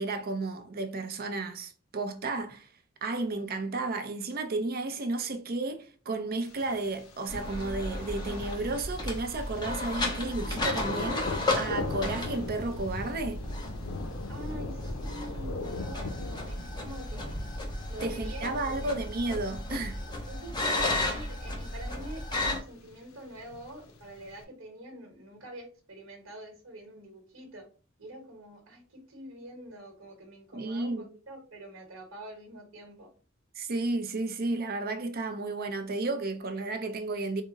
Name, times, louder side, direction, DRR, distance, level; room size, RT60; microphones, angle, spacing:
voice 1, 0.0-2.7 3.0-13.4 18.0-20.0 30.5-31.1 33.6-37.4, right 2 dB, 50° right, 0.5 m, -32 dB
Thunder, 6.5-24.4, left 3 dB, 90° left, 0.6 m, -42 dB
sound 1, 7.3-22.6, left 2 dB, 20° left, 0.8 m, -34 dB
voice 2, 14.3-17.4 17.9-18.9 20.3-27.7 28.0-33.1, right 1 dB, 70° right, 1.1 m, -45 dB
3.6 x 2.0 x 4.0 m
head